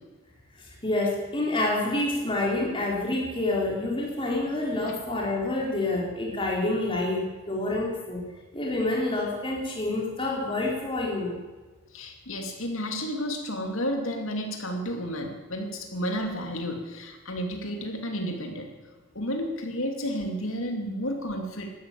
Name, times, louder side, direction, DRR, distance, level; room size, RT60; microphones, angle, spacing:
voice 1, 0.8-8.2 8.5-11.4, left 2 dB, 25° left, -2 dB, 3.9 m, -27 dB
voice 2, 11.9-18.7 19.1-21.7, equal, 70° left, 3 dB, 2.7 m, -31 dB
13.0 x 12.0 x 8.6 m, 1.3 s
head